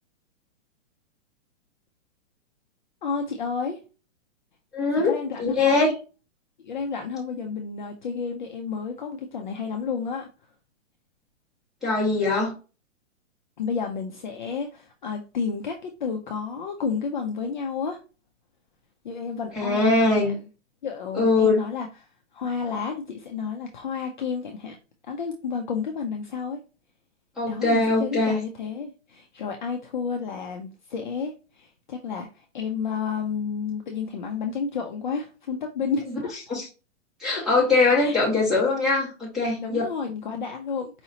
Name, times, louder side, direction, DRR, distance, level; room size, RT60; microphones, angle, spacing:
voice 1, 3.0-3.8 4.9-5.9 6.6-10.3 13.6-18.0 19.0-20.4 20.8-21.9 22.3-24.8 25.1-26.6 27.5-36.3 38.0-38.2 39.6-41.0, left 5 dB, 40° left, 3 dB, 0.5 m, -31 dB
voice 2, 4.7-5.1 5.4-5.9 11.8-12.5 19.5-20.3 21.1-21.6 27.4-28.4 36.5-36.6 37.2-39.8, left 3 dB, ahead, -6 dB, 1.5 m, -21 dB
4.9 x 2.8 x 2.7 m, 0.33 s
hypercardioid pair, 165°, 38 cm